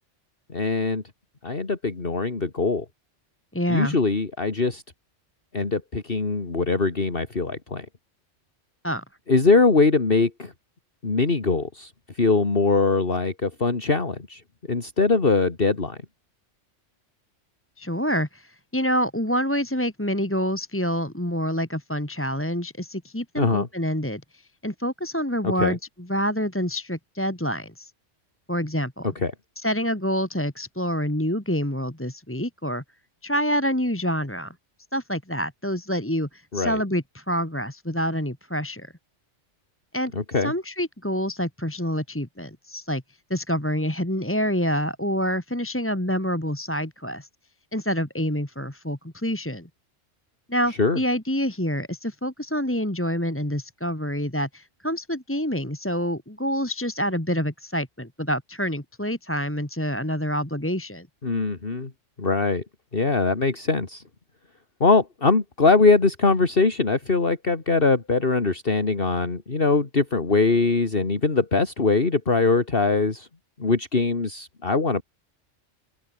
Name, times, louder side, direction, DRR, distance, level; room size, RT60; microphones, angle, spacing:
voice 1, 0.5-1.0 1.4-2.9 3.7-4.8 5.5-7.9 9.3-10.5 11.0-14.4 14.7-16.0 23.4-23.7 25.4-25.8 29.0-29.3 36.5-36.8 40.1-40.5 50.8-51.0 61.2-61.9 62.2-62.6 62.9-64.0 64.8-73.3 73.6-75.0, left 3 dB, 45° left, 2.5 m, -22 dB
voice 2, 3.5-4.0 8.8-9.0 17.8-27.9 28.5-29.1 29.6-32.8 33.2-34.5 34.9-38.9 39.9-40.1 40.4-43.0 43.3-47.3 47.7-49.7 50.5-61.1, equal, 10° left, 2.4 m, -27 dB
open air
omnidirectional pair, 1.3 m